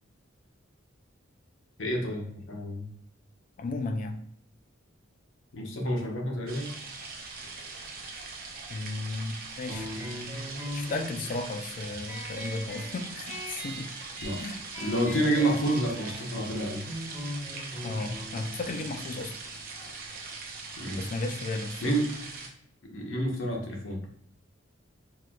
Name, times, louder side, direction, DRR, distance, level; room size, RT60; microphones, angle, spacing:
voice 1, 1.8-2.9 5.5-6.7 14.2-14.4 14.8-16.9 20.8-21.0 21.8-22.1 22.9-24.0, right 1 dB, 70° left, 0 dB, 0.7 m, -29 dB
voice 2, 3.6-4.2 8.7-9.9 10.7-13.9 14.4-14.6 17.8-19.4 21.0-21.8, left 3 dB, 40° left, 5 dB, 0.3 m, -34 dB
sound 1, 6.5-22.5, right 4 dB, 45° right, 0.5 m, -41 dB
sound 2, 9.7-20.8, equal, 10° right, 1.1 m, -41 dB
4.2 x 2.2 x 2.3 m, 0.67 s
head